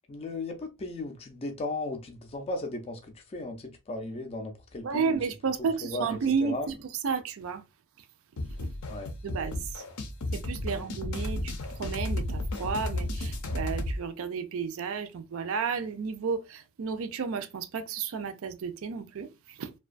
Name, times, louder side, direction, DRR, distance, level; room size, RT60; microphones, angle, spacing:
voice 1, 0.1-5.2 5.6-6.7 8.9-9.1 10.7-10.8, left 2 dB, 30° left, 0.4 m, -36 dB
voice 2, 4.8-6.8 7.0-7.6 8.6-8.7 9.2-9.8 10.3-11.5 11.8-19.7, right 5 dB, 65° right, 0.4 m, -32 dB
sound 1, 8.4-14.0, left 1 dB, 90° left, 0.6 m, -33 dB
2.6 x 2.2 x 2.4 m
head